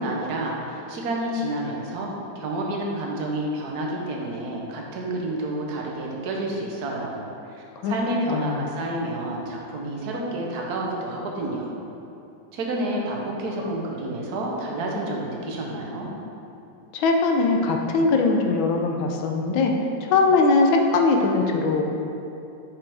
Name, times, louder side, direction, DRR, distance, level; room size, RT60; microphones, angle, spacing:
voice 1, 0.0-2.1 2.3-11.8 12.5-16.1, right 1 dB, 60° right, -1 dB, 1.3 m, -29 dB
voice 2, 8.3-8.6 16.9-19.7 20.0-21.9, left 3 dB, 80° left, 3 dB, 1.4 m, -21 dB
6.8 x 5.8 x 3.5 m, 2.7 s
omnidirectional pair, 2.2 m